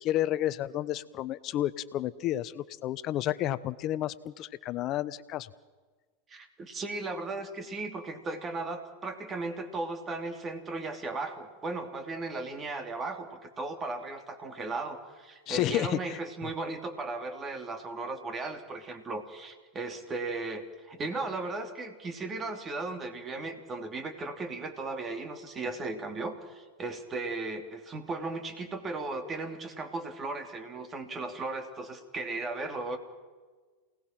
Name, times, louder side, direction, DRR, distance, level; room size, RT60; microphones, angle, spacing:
voice 1, 0.0-5.5 15.5-16.5, left 13 dB, 45° left, 15 dB, 1.0 m, -31 dB
voice 2, 6.3-33.0, right 3 dB, 25° right, 6 dB, 3.0 m, -36 dB
28.0 x 18.5 x 6.0 m, 1.4 s
hypercardioid pair, 100°, 0 cm